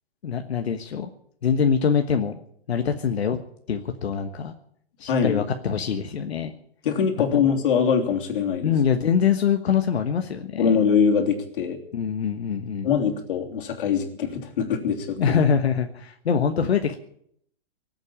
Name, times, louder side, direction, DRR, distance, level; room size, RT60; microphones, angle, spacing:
voice 1, 0.2-1.1 1.4-2.4 2.7-3.4 3.7-4.5 5.0-6.5 7.3-7.4 8.6-10.7 11.9-12.9 15.2-17.0, left 7 dB, 90° left, 6 dB, 1.4 m, -24 dB
voice 2, 5.1-5.4 6.8-8.7 10.6-11.8 12.8-15.4, left 6 dB, 55° left, 3 dB, 3.2 m, -23 dB
19.0 x 8.1 x 8.7 m, 0.67 s
hypercardioid pair, 150°, 31 cm